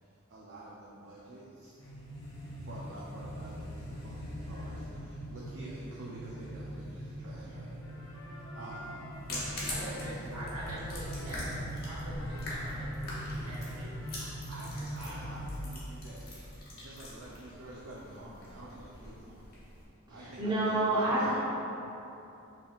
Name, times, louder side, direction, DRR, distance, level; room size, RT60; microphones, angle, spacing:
voice 1, 0.3-1.8 2.6-7.8 8.6-10.4 14.5-19.5 20.1-21.3, right 1 dB, 55° right, -6 dB, 0.5 m, -48 dB
sound 1, 1.8-16.0, equal, 20° left, 1.3 m, -41 dB
sound 2, 7.8-14.4, left 1 dB, 65° left, 0.6 m, -51 dB
sound 3, 9.1-19.8, left 1 dB, 45° left, 1.1 m, -44 dB
voice 2, 9.7-13.9 14.7-14.8, right 1 dB, 90° right, -8 dB, 1.3 m, -44 dB
voice 3, 20.1-21.4, right 1 dB, 20° right, -9 dB, 0.8 m, -29 dB
5.8 x 3.4 x 2.4 m, 2.9 s
head